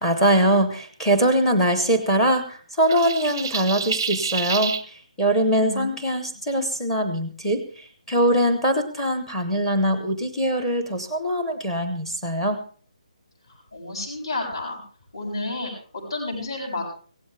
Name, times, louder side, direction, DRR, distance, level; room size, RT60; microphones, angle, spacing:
voice 1, 0.0-12.6, right 1 dB, 5° left, 9 dB, 0.9 m, -22 dB
sound 1, 2.9-4.8, right 6 dB, 25° right, 0.6 m, -28 dB
voice 2, 5.6-6.0 13.7-14.8 15.1-16.9, left 2 dB, 45° left, -1 dB, 7.5 m, -31 dB
17.0 x 15.0 x 3.4 m, 0.42 s
hypercardioid pair, 180°, 4 cm